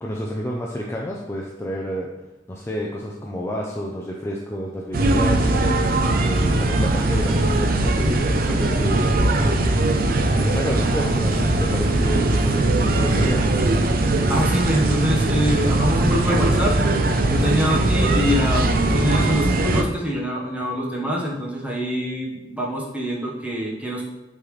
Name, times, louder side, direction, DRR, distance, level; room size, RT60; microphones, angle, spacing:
voice 1, 0.0-2.1 2.5-5.5 6.2-9.4 9.6-13.4, equal, 15° left, -2 dB, 0.5 m, -30 dB
sound 1, 4.9-19.8, right 2 dB, 55° right, 0.6 m, -20 dB
voice 2, 14.3-16.8 17.2-24.1, equal, 10° right, -4 dB, 1.3 m, -25 dB
8.7 x 4.0 x 3.3 m, 1.0 s
head